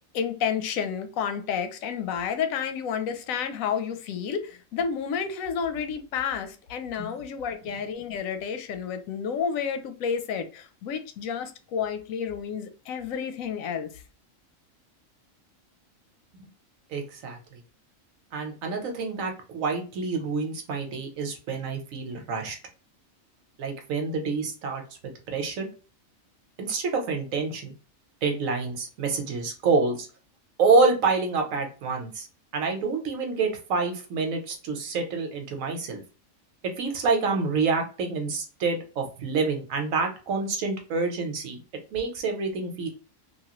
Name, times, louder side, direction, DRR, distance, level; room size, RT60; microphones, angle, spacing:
voice 1, 0.1-13.9, left 7 dB, 90° left, 1.0 m, -30 dB
voice 2, 16.9-17.6 18.3-22.6 23.6-25.7 26.6-27.7 28.2-30.1 30.6-32.3 32.5-36.0 36.8-41.6 41.9-42.9, right 4 dB, 85° right, 1.2 m, -27 dB
3.0 x 2.4 x 2.9 m
omnidirectional pair, 1.4 m